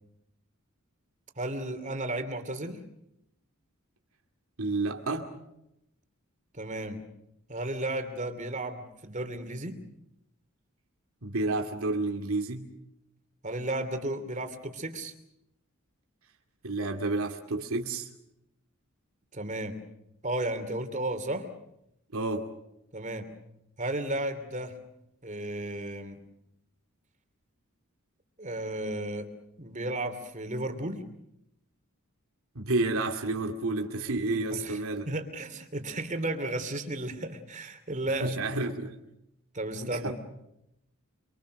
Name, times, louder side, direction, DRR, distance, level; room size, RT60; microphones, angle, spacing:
voice 1, 1.4-2.8 6.5-7.0 7.5-9.8 13.4-15.1 19.3-19.8 20.2-21.5 22.9-23.3 23.8-24.8 25.2-26.2 28.4-29.3 29.6-31.0 34.5-34.8 35.1-38.4 39.5-40.1, right 1 dB, 35° right, 2.8 m, -33 dB
voice 2, 4.6-5.3 11.2-12.7 16.6-18.1 22.1-22.5 32.5-35.1 38.2-39.0 39.8-40.1, right 2 dB, 85° right, 2.4 m, -30 dB
26.5 x 25.0 x 6.5 m
head